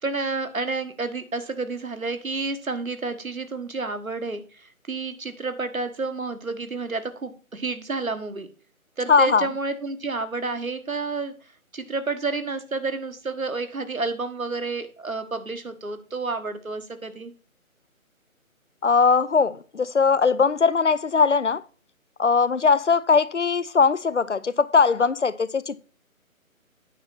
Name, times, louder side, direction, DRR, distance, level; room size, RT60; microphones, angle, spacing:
voice 1, 0.0-8.5 9.0-17.3, right 3 dB, 75° right, 9 dB, 1.5 m, -30 dB
voice 2, 9.1-9.5 18.8-21.6 22.2-25.8, left 5 dB, 55° left, 17 dB, 0.6 m, -20 dB
9.2 x 6.1 x 4.2 m, 0.37 s
figure-of-eight pair, 155°, 42 cm